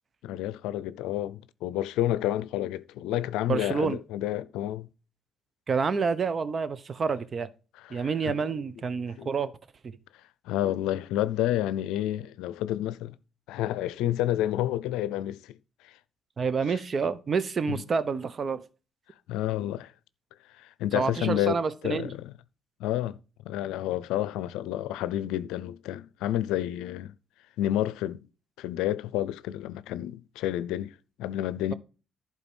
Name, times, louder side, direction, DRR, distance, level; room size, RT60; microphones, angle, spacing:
voice 1, 0.2-4.9 7.8-8.6 9.2-9.3 10.5-13.2 13.5-15.6 15.8-15.9 16.7-16.8 17.7-17.8 19.3-19.9 20.6-22.3 22.8-23.2 23.4-27.1 27.6-28.2 28.6-31.7, left 13 dB, 90° left, 0.5 m, -30 dB
voice 2, 3.5-4.0 5.7-7.5 7.9-9.5 9.8-10.0 16.4-18.6 20.9-22.1, right 5 dB, 45° right, 1.0 m, -28 dB
11.5 x 4.4 x 6.2 m
supercardioid pair, 70°, 0 cm